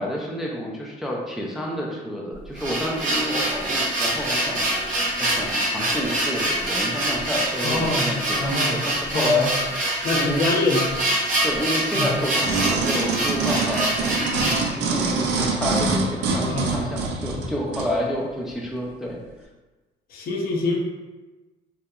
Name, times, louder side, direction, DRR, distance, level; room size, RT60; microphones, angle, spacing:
voice 1, 0.0-4.7 5.2-9.5 10.1-10.7 11.4-14.4 14.7-19.2, left 1 dB, ahead, -3 dB, 0.3 m, -29 dB
sound 1, 2.3-14.7, right 1 dB, 50° right, 0.7 m, -25 dB
voice 2, 7.6-8.8 9.1-9.5 10.0-10.8 11.9-12.1 16.5-17.0 20.1-20.8, left 2 dB, 60° left, 0 dB, 0.5 m, -25 dB
sound 2, 12.4-17.9 18.5-18.6, right 4 dB, 90° right, 0.4 m, -25 dB
2.8 x 2.2 x 2.2 m, 1.2 s
cardioid pair, 110°, 17 cm